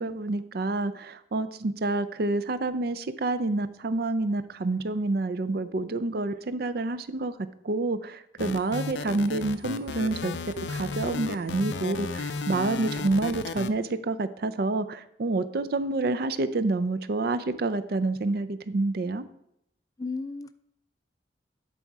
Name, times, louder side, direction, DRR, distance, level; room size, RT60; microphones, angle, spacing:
voice 1, 0.0-7.3 7.6-19.3, right 2 dB, 60° right, 13 dB, 0.5 m, -28 dB
sound 1, 8.4-13.7, left 4 dB, 85° left, 0.5 m, -33 dB
voice 2, 20.0-20.5, left 3 dB, 20° left, 12 dB, 0.3 m, -35 dB
11.0 x 4.1 x 4.7 m, 0.77 s
head